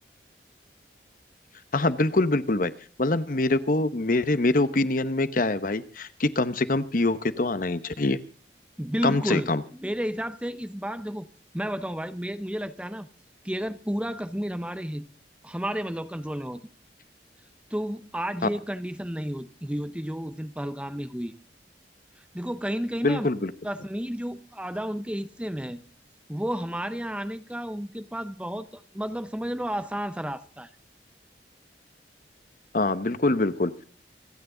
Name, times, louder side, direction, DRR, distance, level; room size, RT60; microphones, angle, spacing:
voice 1, 1.7-2.7 3.0-8.2 9.0-9.6 23.0-23.5 32.7-33.8, left 2 dB, 50° left, 1.0 m, -24 dB
voice 2, 8.8-9.5 9.8-11.3 11.5-13.1 13.4-15.1 15.4-16.6 17.7-21.3 22.2-23.3 23.6-25.8 26.3-30.7, equal, 5° right, 0.8 m, -32 dB
27.0 x 9.6 x 3.9 m
head